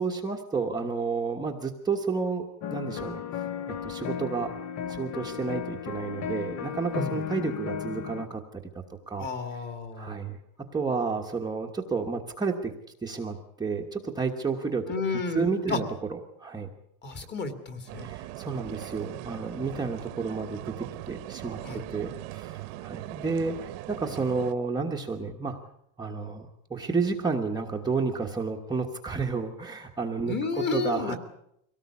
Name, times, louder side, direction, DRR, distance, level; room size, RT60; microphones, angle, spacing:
voice 1, 0.0-4.5 4.9-9.3 10.0-10.4 10.7-12.7 13.0-14.9 15.3-16.7 18.0-25.6 26.0-31.2, right 4 dB, 10° right, 0 dB, 1.2 m, -31 dB
sound 1, 2.6-8.3, left 8 dB, 40° left, 1.3 m, -35 dB
voice 2, 9.2-10.2 14.9-15.8 17.0-18.1 21.6-21.8 30.3-31.2, left 4 dB, 25° left, 8 dB, 2.5 m, -32 dB
sound 2, 17.9-24.5, right 17 dB, 70° right, 1.3 m, -40 dB
24.0 x 18.0 x 8.4 m, 0.76 s
cardioid pair, 170°, 42 cm